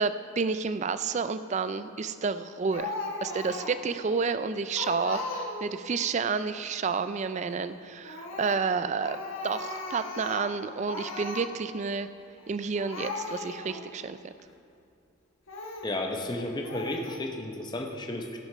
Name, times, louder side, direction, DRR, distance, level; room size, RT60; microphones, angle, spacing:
voice 1, 0.0-2.9 3.2-9.2 9.4-12.1 12.5-14.3, right 5 dB, 35° right, 12 dB, 0.3 m, -30 dB
Speech, 2.7-3.9 4.3-4.4 4.8-5.8 8.0-8.7 9.0-10.6 10.9-11.5 12.4-12.5 12.7-13.8 14.4-14.5 15.5-15.9 16.6-17.2, left 3 dB, 70° left, 1.3 m, -37 dB
voice 2, 15.8-18.4, left 1 dB, 20° left, 3 dB, 0.7 m, -33 dB
16.5 x 6.4 x 5.5 m, 2.5 s
head